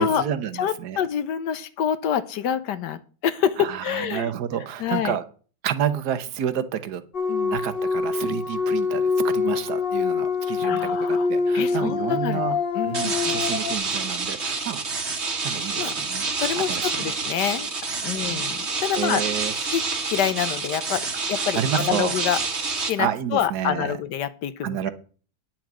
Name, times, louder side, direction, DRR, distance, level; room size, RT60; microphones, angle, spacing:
voice 1, 0.0-1.0 3.6-5.2 5.6-7.0 7.5-12.6 12.8-14.8 15.4-16.3 16.5-17.2 18.0-18.4 19.0-19.5 21.4-22.2 23.0-23.9 24.6-24.9, right 9 dB, 60° right, 1.4 m, -29 dB
voice 2, 0.6-4.3 4.8-5.2 7.3-7.6 10.6-11.3 11.5-12.5 12.7-13.4 15.8-15.9 16.4-17.7 18.0-19.2 19.6-22.4 22.8-24.9, left 9 dB, 70° left, 1.3 m, -27 dB
sound 1, 7.1-13.8, left 4 dB, 35° left, 1.1 m, -25 dB
sound 2, 12.9-22.9, right 4 dB, 35° right, 1.6 m, -28 dB
10.5 x 5.9 x 7.5 m
omnidirectional pair, 2.1 m